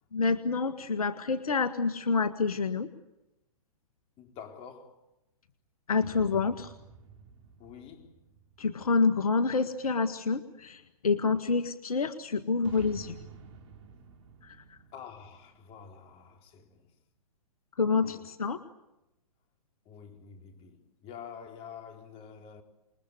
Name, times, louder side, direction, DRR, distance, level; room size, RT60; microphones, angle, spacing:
voice 1, 0.1-2.9 5.9-6.7 8.6-13.2 14.4-14.6 17.8-18.6, left 4 dB, 75° left, 1.8 m, -28 dB
voice 2, 4.2-5.1 7.6-8.2 14.9-16.9 18.0-18.3 19.9-22.6, left 7 dB, 30° left, 4.0 m, -48 dB
sound 1, 6.0-9.7 12.6-16.4, right 6 dB, 55° right, 3.3 m, -51 dB
28.0 x 21.5 x 8.1 m
hypercardioid pair, 120°, 19 cm